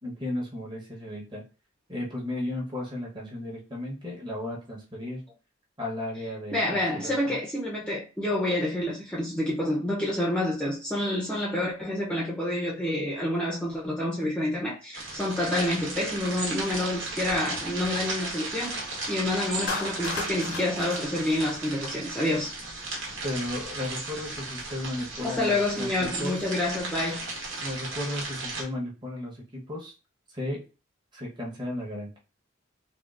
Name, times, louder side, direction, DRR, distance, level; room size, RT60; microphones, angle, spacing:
voice 1, 0.0-1.4 1.9-5.2 5.8-7.4 23.2-26.4 27.6-29.9 30.3-30.7 31.1-32.2, left 1 dB, 25° right, 1.0 m, -34 dB
voice 2, 6.5-18.8 19.1-22.6 25.2-27.3, left 1 dB, 5° left, 0.6 m, -28 dB
sound 1, 14.9-28.6, right 2 dB, 75° right, 1.2 m, -35 dB
Clapping, 19.7-22.1, left 3 dB, 55° left, 0.6 m, -36 dB
3.6 x 2.3 x 2.4 m
head